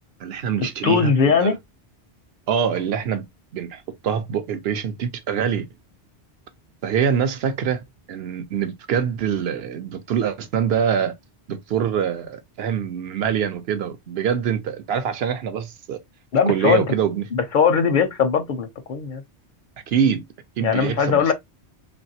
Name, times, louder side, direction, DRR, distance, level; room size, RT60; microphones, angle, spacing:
voice 1, 0.2-1.1 1.4-1.6 2.5-3.3 3.5-5.7 6.8-11.1 11.5-16.0 16.5-17.3 19.9-20.3 20.6-21.3, right 8 dB, 65° right, 0.8 m, -24 dB
voice 2, 0.8-1.6 16.3-16.8 17.3-19.2 20.6-21.3, left 6 dB, 60° left, 0.6 m, -20 dB
3.1 x 2.5 x 2.6 m
omnidirectional pair, 1.1 m